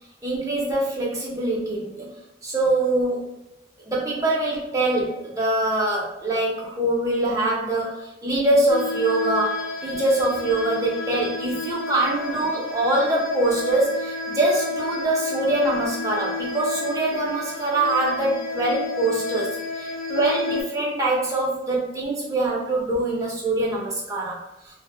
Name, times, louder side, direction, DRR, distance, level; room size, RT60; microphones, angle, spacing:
voice 1, 0.2-2.1 2.4-3.3 3.9-24.4, right 2 dB, 20° right, -4 dB, 0.6 m, -24 dB
sound 1, 8.7-20.6, left 3 dB, 45° left, 0.4 m, -31 dB
2.1 x 2.1 x 2.9 m, 0.88 s
head